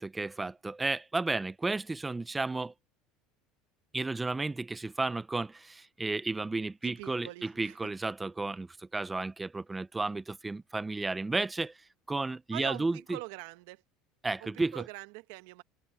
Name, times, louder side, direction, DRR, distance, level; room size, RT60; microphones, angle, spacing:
voice 1, 0.0-2.7 3.9-13.2 14.2-14.9, right 3 dB, 15° right, 0.7 m, -33 dB
voice 2, 6.8-7.8 12.5-13.8 14.4-15.6, right 21 dB, 80° right, 1.2 m, -43 dB
supercardioid pair, 105°, 0 cm